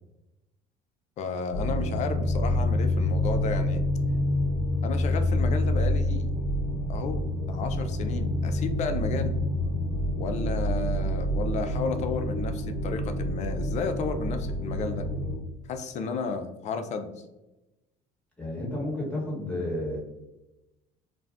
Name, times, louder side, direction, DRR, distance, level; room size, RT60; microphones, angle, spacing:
voice 1, 1.2-3.8 4.8-6.3 6.9-9.4 10.2-15.1 15.7-17.1, left 5 dB, 45° left, 8 dB, 0.4 m, -32 dB
sound 1, 1.5-15.4, left 1 dB, 75° left, 0.7 m, -27 dB
voice 2, 18.4-20.0, left 1 dB, 5° left, -5 dB, 1.1 m, -31 dB
2.4 x 2.2 x 3.3 m, 0.99 s
cardioid pair, 105°, 16 cm